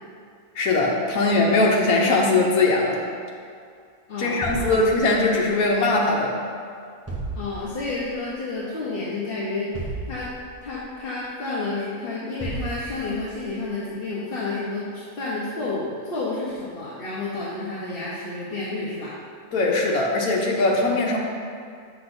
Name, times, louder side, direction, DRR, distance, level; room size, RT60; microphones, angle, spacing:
voice 1, 0.5-3.0 4.2-6.3 19.5-21.2, left 2 dB, 75° left, -2 dB, 1.2 m, -20 dB
voice 2, 4.1-4.8 7.3-10.3 10.6-19.1, left 3 dB, 45° left, -7 dB, 0.9 m, -30 dB
sound 1, 4.4-5.5 7.1-8.0 9.7-10.8 12.4-13.4, right 2 dB, 20° right, 0.4 m, -34 dB
7.7 x 6.0 x 2.6 m, 2.2 s
omnidirectional pair, 1.6 m